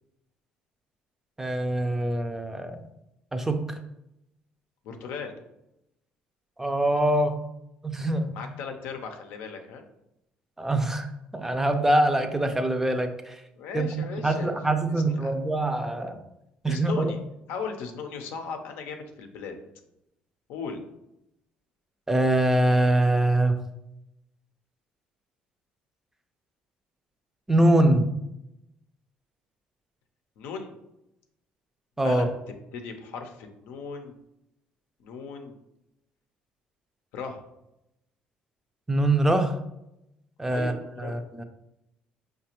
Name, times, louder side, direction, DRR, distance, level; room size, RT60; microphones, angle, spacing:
voice 1, 1.4-2.8 3.3-3.8 6.6-7.4 7.8-8.3 10.6-11.1 11.3-13.4 13.7-16.2 16.6-17.1 22.1-23.6 27.5-28.1 32.0-32.3 38.9-39.6 40.4-40.7 41.0-41.4, right 1 dB, 10° right, 6 dB, 0.4 m, -23 dB
voice 2, 4.8-5.4 8.3-9.8 13.5-14.5 14.8-15.3 16.6-17.2 17.5-19.6 20.5-20.8 30.4-30.7 32.0-32.3 32.7-34.1 35.0-35.6 37.1-37.4 40.5-41.2, left 5 dB, 80° left, 5 dB, 0.6 m, -37 dB
5.0 x 2.2 x 2.9 m, 0.86 s
cardioid pair, 95°, 3 cm